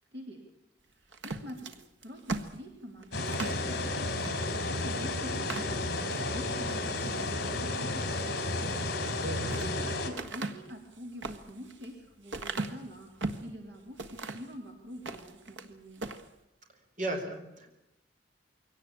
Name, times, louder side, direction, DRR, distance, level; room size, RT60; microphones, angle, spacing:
voice 1, 0.1-0.4 1.0-1.7 2.0-4.3 4.7-5.8 6.2-8.7 9.8-13.1 13.4-16.0, equal, 65° right, 2 dB, 3.4 m, -46 dB
sound 1, 1.1-3.6 4.2-4.4 4.8-4.9 5.3-6.2 6.7-7.2 9.0-9.7 10.2-13.5 14.0-14.5 14.9-15.7 16.0-16.3, right 3 dB, 90° right, 1.6 m, -38 dB
sound 2, 3.1-10.1, left 2 dB, 55° left, 3.7 m, -32 dB
voice 2, 9.2-9.7 17.0-17.7, right 1 dB, 45° right, 2 dB, 4.4 m, -35 dB
23.0 x 18.0 x 8.8 m, 0.90 s
head